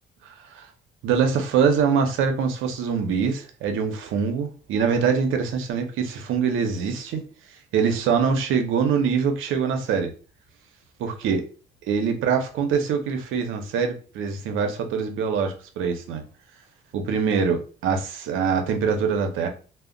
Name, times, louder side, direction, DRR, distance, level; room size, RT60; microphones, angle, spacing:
voice 1, 0.2-0.7 1.0-7.2 7.7-10.1 11.0-11.4 11.9-16.2 16.9-19.5, right 6 dB, 85° right, 5 dB, 0.6 m, -24 dB
2.1 x 2.1 x 3.6 m, 0.37 s
cardioid pair, 90°, 20 cm